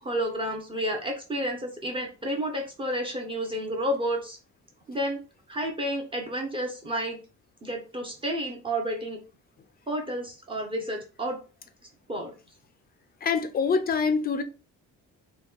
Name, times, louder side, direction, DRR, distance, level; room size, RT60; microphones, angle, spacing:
voice 1, 0.0-4.4 4.9-5.2 5.5-7.2 7.6-9.2 9.9-11.4 12.1-12.3, equal, 15° right, 0.6 m, -30 dB
voice 2, 13.2-14.4, left 5 dB, 30° left, 0.4 m, -25 dB
3.0 x 2.2 x 3.5 m
cardioid pair, 135°, 30 cm